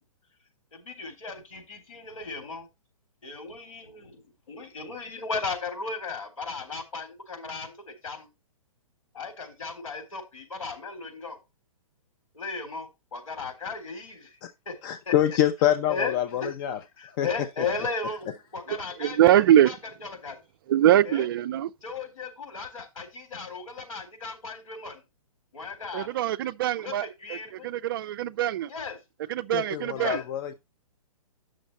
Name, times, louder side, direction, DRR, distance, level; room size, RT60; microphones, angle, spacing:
voice 1, 0.7-2.7 3.2-8.3 9.1-11.4 12.3-14.4 14.7-15.1 15.9-16.5 17.0-20.4 21.0-21.3 21.8-25.0 25.5-26.1 26.8-27.7 28.7-29.0 30.0-30.3, left 4 dB, 70° left, 3.8 m, -36 dB
voice 2, 14.8-16.8 17.2-17.3 29.5-30.5, left 11 dB, 35° left, 0.7 m, -25 dB
voice 3, 18.7-19.7 20.7-21.7 25.9-27.4 27.6-28.7 29.3-30.2, right 12 dB, 40° right, 0.4 m, -23 dB
8.9 x 6.5 x 4.2 m
figure-of-eight pair, 120°, 18 cm